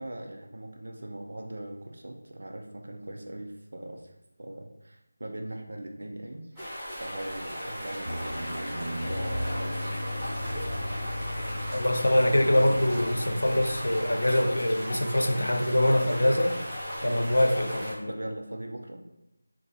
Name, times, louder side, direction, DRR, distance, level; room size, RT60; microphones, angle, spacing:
voice 1, 0.0-4.1 4.4-6.7 7.0-10.0 12.4-12.6 16.1-16.3 17.0-17.2 18.1-19.0, right 1 dB, 70° right, 2 dB, 0.4 m, -40 dB
sound 1, 6.6-17.9, equal, ahead, 0.8 m, -37 dB
sound 2, 8.0-13.9, equal, 90° right, 1.0 m, -37 dB
sound 3, 9.0-18.2, left 2 dB, 30° left, 0.4 m, -39 dB
voice 2, 11.7-16.5 17.0-18.1, left 1 dB, 85° left, 5 dB, 0.5 m, -24 dB
2.6 x 2.3 x 3.8 m, 0.89 s
figure-of-eight pair, 170°, 0 cm